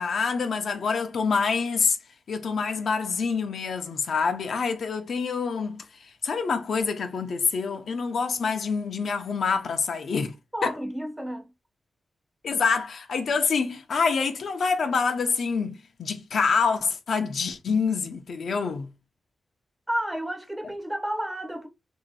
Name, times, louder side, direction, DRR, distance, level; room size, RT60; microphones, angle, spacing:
voice 1, 0.0-2.0 2.3-10.3 10.6-10.7 12.4-18.9, left 5 dB, 60° left, 0.6 m, -26 dB
voice 2, 10.5-11.5 19.9-21.7, equal, 10° right, 0.6 m, -31 dB
3.0 x 2.8 x 4.1 m
wide cardioid pair, 180°, 0 cm